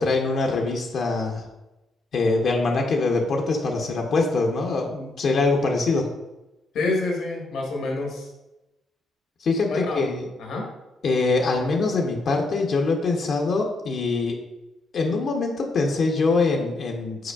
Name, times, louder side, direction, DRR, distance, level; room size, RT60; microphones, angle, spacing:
voice 1, 0.0-1.4 2.1-6.1 9.4-10.3 11.0-14.4 14.9-17.3, left 3 dB, 60° left, 1 dB, 0.6 m, -23 dB
voice 2, 6.7-8.3 9.7-10.1 10.4-10.6, left 2 dB, 75° left, 0 dB, 1.2 m, -27 dB
4.9 x 4.3 x 2.3 m, 0.98 s
cardioid pair, 90°, 0 cm